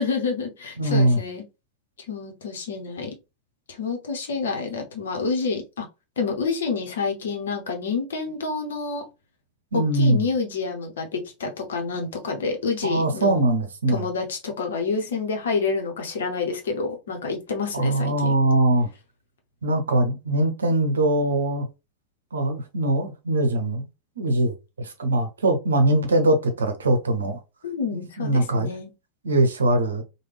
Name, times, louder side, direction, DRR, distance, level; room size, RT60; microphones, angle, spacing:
voice 1, 0.0-1.4 2.1-3.2 3.7-5.9 6.2-9.0 9.7-13.4 13.9-18.3 27.6-28.9, left 4 dB, 65° left, 0.8 m, -28 dB
voice 2, 0.8-1.2 9.7-10.3 12.8-14.0 17.7-18.9 19.6-21.7 22.3-23.9 24.2-27.4 27.9-28.7 29.2-30.0, right 1 dB, 70° right, 0.7 m, -22 dB
3.2 x 2.2 x 3.3 m
figure-of-eight pair, 90°, 0 cm